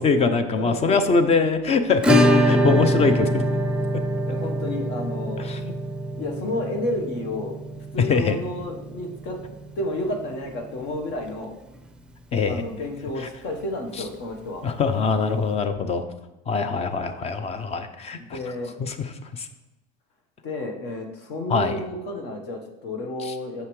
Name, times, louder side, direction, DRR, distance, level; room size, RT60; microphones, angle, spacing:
voice 1, 0.0-2.2 2.5-3.4 5.4-5.7 8.1-8.4 12.3-12.6 13.2-13.3 14.6-16.0 16.5-18.4 18.8-19.0 19.3-19.5 21.5-21.8 23.2-23.3, left 4 dB, 30° left, 10 dB, 0.6 m, -23 dB
voice 2, 0.5-1.0 4.3-5.4 6.1-7.5 7.9-9.4 9.8-11.5 12.4-14.6 18.2-18.8 20.4-23.7, left 1 dB, 60° left, 2 dB, 1.2 m, -31 dB
Acoustic guitar / Strum, 2.0-10.6 10.9-11.0 11.3-11.4 11.7-11.8 13.9-14.0 15.1-15.2, equal, 5° right, 0.6 m, -24 dB
6.6 x 5.6 x 3.2 m, 0.93 s
supercardioid pair, 100°, 20 cm